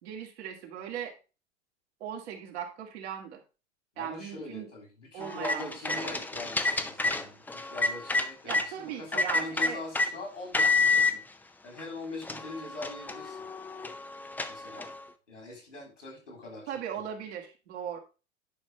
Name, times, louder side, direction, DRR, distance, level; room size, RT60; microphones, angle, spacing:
voice 1, 0.0-1.1 2.0-3.4 4.0-4.7 5.1-6.2 8.4-9.8 16.7-18.0, right 8 dB, 65° right, 2 dB, 2.1 m, -38 dB
voice 2, 4.0-11.2 11.6-13.5 14.5-14.9 15.3-17.1, left 2 dB, 90° left, 1 dB, 4.0 m, -42 dB
sound 1, 5.2-8.7 9.1-10.1 10.5-11.1 11.8-11.9 12.2-15.0, left 3 dB, 5° left, 0.4 m, -29 dB
10.0 x 5.5 x 3.3 m, 0.31 s
hypercardioid pair, 90°, 36 cm